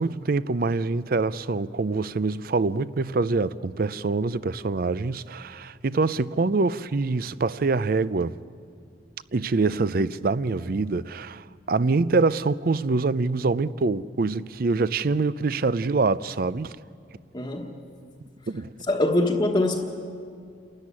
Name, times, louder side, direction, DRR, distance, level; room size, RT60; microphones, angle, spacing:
voice 1, 0.0-8.3 9.3-16.7 18.5-18.7, right 3 dB, 55° right, 0.5 m, -25 dB
voice 2, 17.3-17.8 18.9-19.8, left 2 dB, 25° left, 1.3 m, -23 dB
29.0 x 13.5 x 9.8 m
head